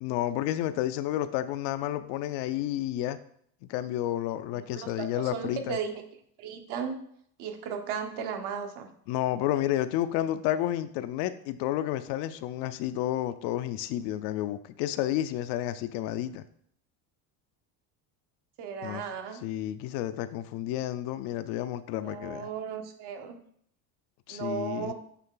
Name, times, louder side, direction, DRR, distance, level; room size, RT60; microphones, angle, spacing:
voice 1, 0.0-3.2 3.6-5.8 9.1-16.4 18.8-19.0 19.4-22.5 24.3-24.9, left 13 dB, 70° left, 12 dB, 0.6 m, -31 dB
voice 2, 4.5-6.0 6.4-7.0 7.4-8.9 18.6-19.4 22.0-23.4 24.3-24.9, right 6 dB, 70° right, 5 dB, 1.1 m, -35 dB
8.3 x 3.2 x 3.8 m, 0.66 s
supercardioid pair, 115°, 43 cm